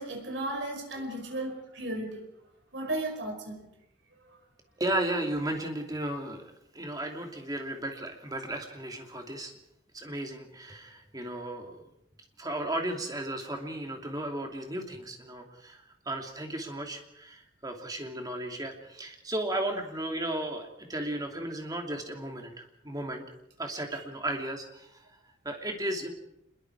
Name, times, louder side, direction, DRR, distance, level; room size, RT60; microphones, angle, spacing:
voice 1, 0.0-2.3 2.7-3.7 23.9-24.0, right 1 dB, 75° right, 3 dB, 5.6 m, -35 dB
voice 2, 4.8-6.4 6.7-9.5 9.9-11.8 12.4-23.2 23.6-24.9 25.4-26.1, right 1 dB, 20° right, 3 dB, 2.9 m, -35 dB
26.5 x 22.0 x 4.8 m, 0.81 s
head